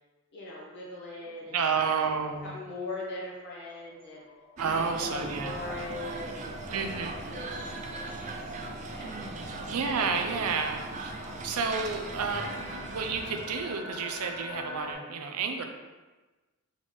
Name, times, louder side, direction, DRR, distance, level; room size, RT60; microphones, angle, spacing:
voice 1, 0.3-2.1 2.4-4.3 4.7-8.6 8.8-9.2 9.4-9.8, left 2 dB, 50° left, -5 dB, 1.1 m, -41 dB
voice 2, 1.5-2.5 4.6-5.5 6.7-7.2 9.7-11.1 11.4-15.6, right 5 dB, 90° right, 5 dB, 0.5 m, -30 dB
sound 1, 2.4-14.9, left 1 dB, 80° left, 1.1 m, -45 dB
sound 2, 4.6-13.8, right 3 dB, 35° right, 0.3 m, -39 dB
4.0 x 3.9 x 3.1 m, 1.2 s
head